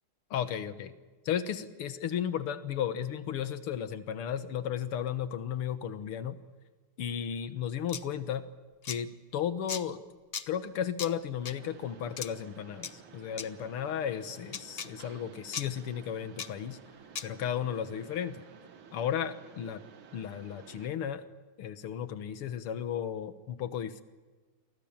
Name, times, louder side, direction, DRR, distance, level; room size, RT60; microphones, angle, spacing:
voice 1, 0.3-0.9 1.3-6.4 7.0-8.5 8.8-10.0 10.5-16.8 17.2-18.4 18.9-19.8 20.1-21.3 21.6-24.0, left 9 dB, 85° left, 11 dB, 2.2 m, -34 dB
sound 1, 7.9-8.0 8.8-9.0 9.7-9.8 10.3-10.5 11.0-11.1 11.5-11.6 12.2-12.3 12.8-12.9 13.4-13.5 14.5-14.9 15.5-15.7 16.4-16.5 17.2-17.3, left 6 dB, 45° left, 0.8 m, -36 dB
Mechanisms, 11.4-20.9, right 7 dB, 70° right, 2.2 m, -53 dB
29.5 x 24.0 x 7.3 m, 1.3 s
omnidirectional pair, 2.4 m